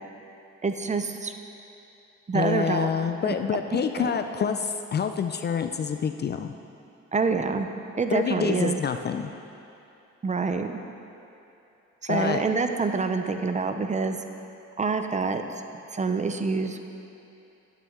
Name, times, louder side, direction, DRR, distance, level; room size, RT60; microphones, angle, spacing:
voice 1, 0.6-1.3 2.3-2.9 3.2-3.4 3.7-4.1 4.4-4.5 7.1-7.7 8.0-8.8 10.2-10.7 12.0-14.2 14.8-15.4 15.9-16.8, right 4 dB, 25° right, 7 dB, 0.5 m, -26 dB
voice 2, 2.3-6.5 8.1-9.3 12.1-12.4, left 6 dB, 35° left, 8 dB, 0.4 m, -27 dB
10.5 x 8.3 x 3.6 m, 2.8 s
cardioid pair, 90°, 30 cm